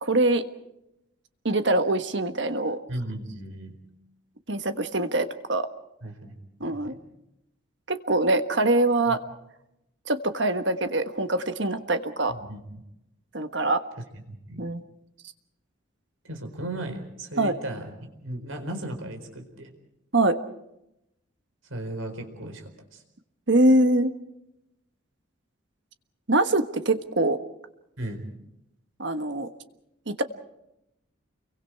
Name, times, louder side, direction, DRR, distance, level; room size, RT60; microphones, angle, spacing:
voice 1, 0.0-0.4 1.4-2.8 4.5-5.7 6.6-6.9 7.9-9.2 10.1-12.3 13.3-13.8 14.6-14.8 17.4-17.5 20.1-20.4 23.5-24.1 26.3-27.4 29.0-29.5 30.1-30.2, right 2 dB, 60° right, 9 dB, 1.4 m, -23 dB
voice 2, 2.9-3.7 6.0-6.3 6.6-7.0 9.1-9.2 12.3-12.8 14.4-14.6 16.2-17.9 18.2-19.7 21.7-23.0 28.0-28.2, right 1 dB, 80° right, 5 dB, 4.4 m, -36 dB
29.5 x 23.5 x 4.7 m, 0.87 s
head